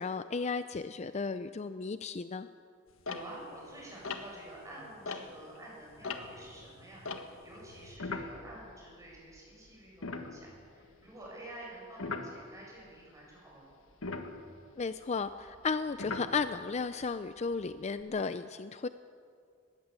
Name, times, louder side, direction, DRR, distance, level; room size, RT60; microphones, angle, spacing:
voice 1, 0.0-2.5 14.8-18.9, left 4 dB, 35° left, 12 dB, 0.4 m, -34 dB
sound 1, 3.0-5.6 5.9-9.4 9.7-9.8 10.0-10.9 12.0-12.3 13.9-16.8 17.4-18.0, left 3 dB, 85° left, 1.6 m, -41 dB
voice 2, 3.0-7.0 7.4-13.7, right 1 dB, 15° right, -3 dB, 7.5 m, -49 dB
20.5 x 16.0 x 8.2 m, 2.3 s
head